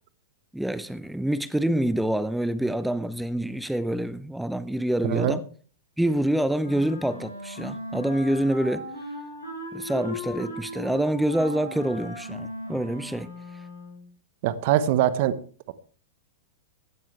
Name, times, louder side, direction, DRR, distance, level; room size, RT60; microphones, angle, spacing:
voice 1, 0.5-5.4 6.0-8.9 9.7-13.3, right 1 dB, 5° right, 0.7 m, -26 dB
voice 2, 5.0-5.4 14.4-15.4, right 12 dB, 50° right, 1.0 m, -22 dB
Wind instrument woodwind instrument, 6.6-14.1, left 1 dB, 80° left, 5.8 m, -38 dB
16.5 x 12.5 x 3.3 m
figure-of-eight pair, 100°, 0 cm